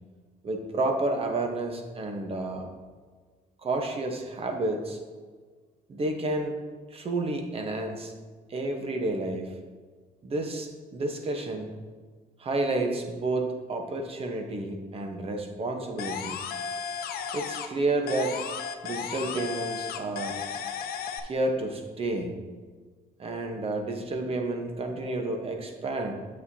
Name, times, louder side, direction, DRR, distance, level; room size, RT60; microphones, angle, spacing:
voice 1, 0.4-2.7 3.6-5.0 5.9-6.6 6.9-8.1 8.5-9.5 10.2-11.7 12.4-16.4 17.3-18.4 18.8-20.4 21.2-22.3 23.2-26.1, right 2 dB, 35° right, 4 dB, 1.1 m, -30 dB
sound 1, 16.0-17.8 18.1-21.2, left 7 dB, 65° left, 0.7 m, -34 dB
8.5 x 6.5 x 2.8 m, 1.5 s
cardioid pair, 110°, 17 cm